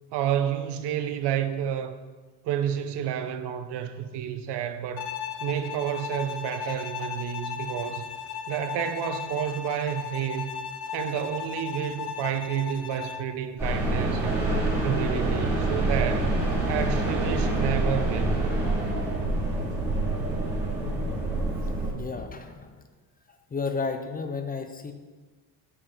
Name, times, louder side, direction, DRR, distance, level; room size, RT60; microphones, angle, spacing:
voice 1, 0.1-2.0 2.4-5.1 5.4-8.1 8.5-10.5 10.9-14.6 14.8-16.3 16.7-18.4, right 10 dB, 75° right, 0.8 m, -30 dB
Bowed string instrument, 5.0-13.3, left 7 dB, 65° left, 0.8 m, -36 dB
sound 1, 13.6-21.9, right 2 dB, 5° right, 2.7 m, -26 dB
voice 2, 21.9-22.8 23.5-24.9, left 4 dB, 20° left, 0.6 m, -32 dB
8.6 x 5.4 x 7.0 m
cardioid pair, 155°, 42 cm